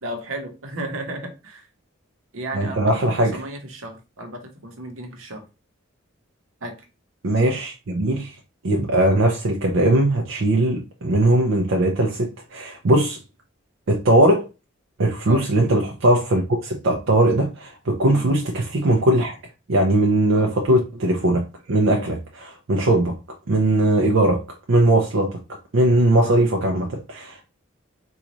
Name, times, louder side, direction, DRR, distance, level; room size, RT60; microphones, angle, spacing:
voice 1, 0.0-1.7 2.3-5.4 6.6-6.8 15.3-15.5 18.1-18.3 20.3-20.5 26.2-26.4, right 1 dB, 80° right, 0.9 m, -34 dB
voice 2, 2.5-3.4 7.2-8.3 8.6-13.2 13.9-14.5 15.0-19.4 19.7-23.1 23.5-24.4 24.7-25.3 25.7-27.5, right 1 dB, 65° right, 0.5 m, -19 dB
3.8 x 2.4 x 3.0 m
head